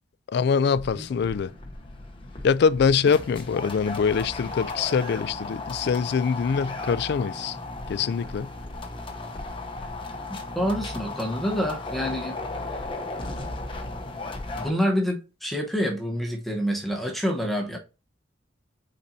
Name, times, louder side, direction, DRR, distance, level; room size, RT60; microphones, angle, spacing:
voice 1, 0.3-1.5 2.4-7.6 7.9-8.5, left 6 dB, 60° left, 0.3 m, -24 dB
sound 1, 0.7-14.7, left 2 dB, 25° left, 0.8 m, -35 dB
voice 2, 10.3-12.4 12.7-12.9 14.5-17.8, equal, ahead, 1.0 m, -27 dB
8.4 x 4.2 x 2.7 m
head